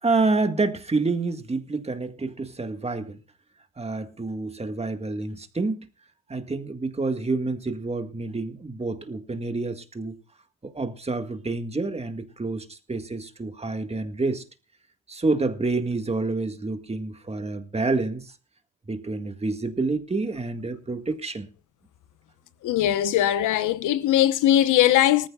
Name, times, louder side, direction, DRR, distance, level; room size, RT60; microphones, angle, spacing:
voice 1, 0.0-3.2 3.8-5.8 6.3-10.2 10.6-14.4 15.1-18.3 18.9-21.5, right 3 dB, 20° right, 1.8 m, -28 dB
voice 2, 22.6-25.3, left 12 dB, 80° left, 1.1 m, -20 dB
19.0 x 14.5 x 2.4 m
cardioid pair, 90°, 30 cm